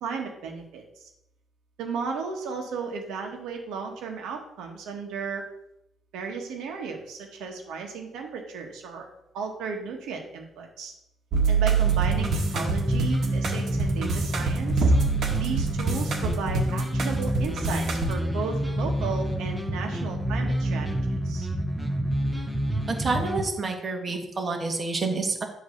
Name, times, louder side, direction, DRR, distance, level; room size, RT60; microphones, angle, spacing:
voice 1, 0.0-1.0 1.8-5.4 6.1-9.1 9.3-10.9 11.5-14.9 15.3-20.9 21.2-21.5, right 5 dB, 90° right, 2 dB, 1.4 m, -34 dB
sound 1, 11.3-18.1, right 4 dB, 65° right, 1.5 m, -25 dB
sound 2, 11.8-23.4, right 1 dB, 10° right, 1.0 m, -28 dB
voice 2, 22.9-25.4, right 3 dB, 35° right, 3 dB, 1.5 m, -28 dB
8.4 x 3.2 x 6.5 m, 0.83 s
cardioid pair, 90°, 0 cm